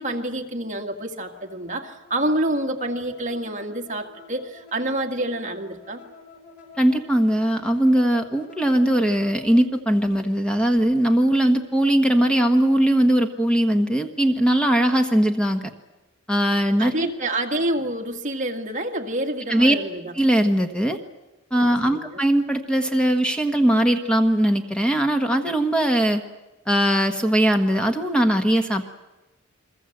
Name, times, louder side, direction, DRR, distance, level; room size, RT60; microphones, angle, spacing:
voice 1, 0.0-6.0 16.8-20.1 21.8-22.2, right 1 dB, 35° right, 3 dB, 2.0 m, -27 dB
sound 1, 1.3-9.6, left 4 dB, 60° left, 7.3 m, -48 dB
voice 2, 6.8-15.6 16.3-17.1 19.5-19.7 20.2-21.0 21.5-26.2 26.7-28.9, right 1 dB, 5° left, 5 dB, 1.3 m, -20 dB
29.5 x 22.0 x 7.9 m, 1.1 s
head